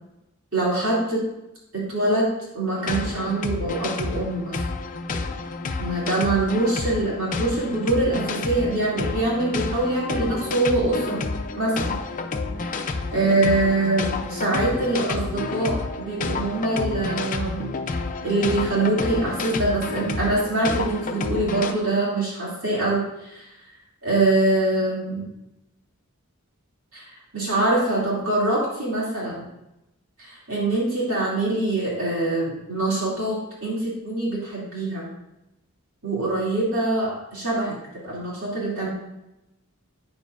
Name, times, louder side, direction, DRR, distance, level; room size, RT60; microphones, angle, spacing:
voice 1, 0.5-1.2 1.7-2.3 2.5-4.6 5.8-11.2 11.6-11.9 12.6-12.8 13.1-17.7 18.2-23.5 24.0-25.3 26.9-29.5 30.2-35.1 36.0-37.7 38.0-38.9, right 2 dB, 70° right, -6 dB, 2.7 m, -24 dB
sound 1, 2.7-21.7, left 3 dB, 40° left, 0.5 m, -30 dB
9.4 x 7.2 x 2.5 m, 0.90 s
head